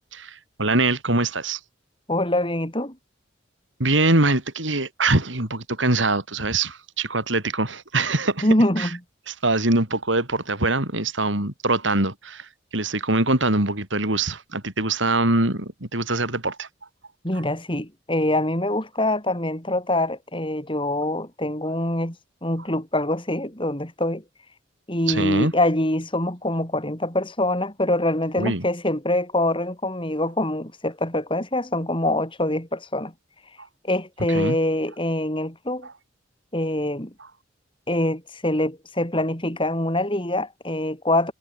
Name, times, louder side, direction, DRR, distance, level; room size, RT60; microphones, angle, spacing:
voice 1, 0.1-1.6 3.8-8.5 8.8-8.9 9.3-16.7 25.1-25.5 28.4-28.6 33.6-33.7 34.3-34.6 35.8-35.9, right 2 dB, 75° right, 5.5 m, -23 dB
voice 2, 2.1-3.0 8.4-8.9 17.2-22.2 22.4-24.2 24.9-33.1 33.8-35.9 36.5-37.1 37.9-41.3, left 1 dB, 25° left, 5.5 m, -24 dB
head